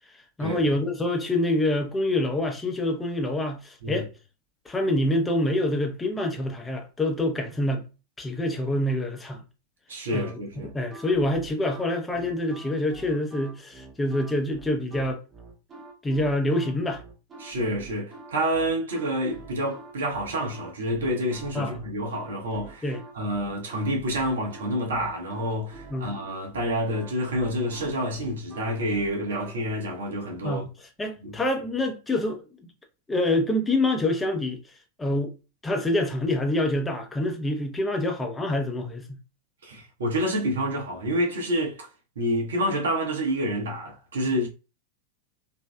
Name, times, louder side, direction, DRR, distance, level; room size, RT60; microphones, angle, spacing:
voice 1, 0.4-4.1 4.7-7.9 8.2-9.4 10.1-10.4 10.6-15.2 16.0-17.0 21.5-21.8 22.8-23.0 25.9-26.1 30.4-30.7 31.0-32.4 33.1-34.6 35.0-35.3 35.6-39.2, left 1 dB, 10° left, 0.7 m, -26 dB
voice 2, 9.9-10.7 17.4-30.6 31.2-31.4 39.6-41.9 42.2-44.5, equal, 60° right, 0.9 m, -28 dB
sound 1, 10.1-29.5, right 3 dB, 20° right, 0.8 m, -46 dB
3.1 x 2.6 x 2.2 m
figure-of-eight pair, 90°, 0 cm